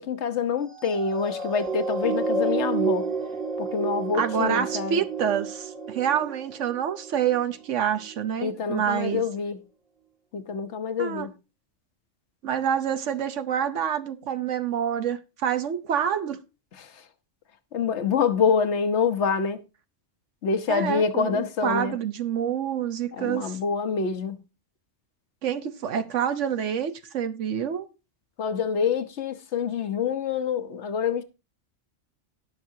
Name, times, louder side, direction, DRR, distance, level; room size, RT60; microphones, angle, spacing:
voice 1, 0.0-3.1 3.6-5.0 8.4-9.6 10.3-11.3 16.8-17.0 17.7-19.6 20.4-22.0 23.1-24.4 28.4-31.2, left 6 dB, 70° left, 1.2 m, -26 dB
sound 1, 0.7-7.4 8.0-8.2, right 4 dB, 45° right, 2.1 m, -30 dB
voice 2, 4.2-9.2 11.0-11.3 12.4-16.4 20.7-23.6 25.4-27.9, right 8 dB, 80° right, 1.1 m, -27 dB
18.0 x 6.0 x 2.7 m
omnidirectional pair, 1.3 m